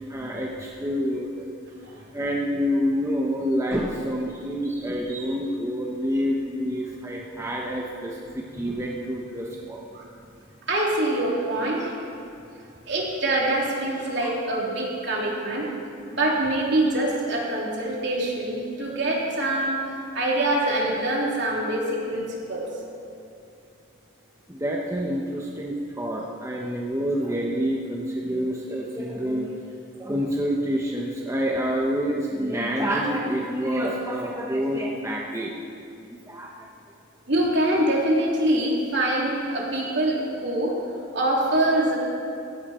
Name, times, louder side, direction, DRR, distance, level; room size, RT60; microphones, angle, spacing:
voice 1, 0.1-1.5 2.1-9.8 14.2-14.3 24.5-29.6 30.0-35.5 36.1-36.7, equal, 15° right, -2 dB, 1.0 m, -27 dB
voice 2, 10.7-12.0 12.9-15.7 16.1-19.9 20.1-22.7 37.3-40.8 41.1-42.0, right 1 dB, 60° right, -3 dB, 3.3 m, -24 dB
16.5 x 16.0 x 4.4 m, 2.5 s
head